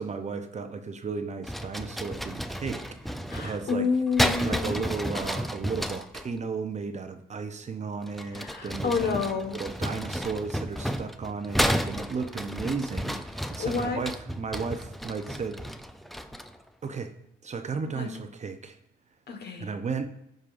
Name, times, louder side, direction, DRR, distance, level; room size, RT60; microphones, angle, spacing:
voice 1, 0.0-3.9 4.4-9.1 9.5-15.6 16.8-17.1 17.4-18.8 19.6-20.1, right 5 dB, 35° right, 8 dB, 0.7 m, -34 dB
sound 1, 1.4-6.3 8.0-16.6, equal, ahead, 0.5 m, -32 dB
voice 2, 3.3-4.8 8.3-9.6 13.6-14.0 17.9-18.1 19.3-19.7, left 5 dB, 55° left, 5 dB, 1.5 m, -29 dB
14.5 x 5.4 x 2.6 m, 0.81 s
cardioid pair, 90°, 20 cm